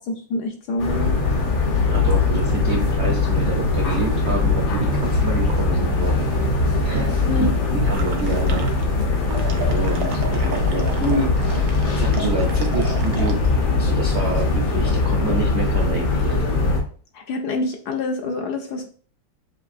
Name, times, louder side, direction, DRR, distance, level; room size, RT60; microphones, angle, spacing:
voice 1, 0.1-1.2 7.3-7.6 17.1-18.9, left 2 dB, 70° left, 3 dB, 1.1 m, -26 dB
sound 1, 0.8-16.8, left 3 dB, 85° left, 2.0 m, -21 dB
voice 2, 1.9-6.2 6.8-7.1 7.7-8.7 9.7-11.3 11.9-13.5 13.8-16.4, right 3 dB, 65° right, 0 dB, 0.6 m, -28 dB
sound 2, 7.9-9.0 9.3-13.3, right 4 dB, 80° right, 1.4 m, -34 dB
6.5 x 2.6 x 2.5 m, 0.43 s
omnidirectional pair, 2.1 m